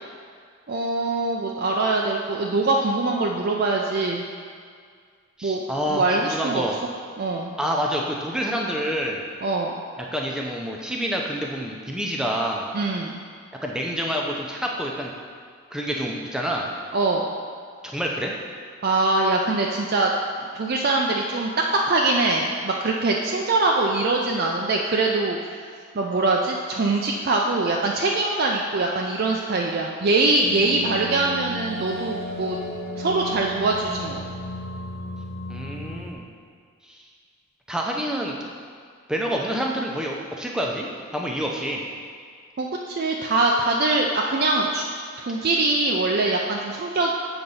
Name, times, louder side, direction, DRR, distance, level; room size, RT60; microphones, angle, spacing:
voice 1, 0.7-4.2 5.4-5.6 5.9-6.7 7.2-7.5 9.4-9.7 12.7-13.2 16.9-17.3 18.8-20.1 20.4-25.4 25.9-32.6 33.0-34.2 42.6-44.8 45.2-47.1, right 2 dB, 50° right, -1 dB, 0.4 m, -23 dB
voice 2, 5.4-6.8 7.6-9.2 10.1-12.7 13.6-15.1 15.7-16.7 17.8-18.3 35.5-36.3 36.8-37.0 37.7-38.4 39.1-40.9 41.1-41.8, equal, 5° right, -1 dB, 0.6 m, -27 dB
sound 1, 30.4-36.1, equal, 50° left, 0.7 m, -34 dB
7.7 x 4.0 x 5.5 m, 2.1 s
head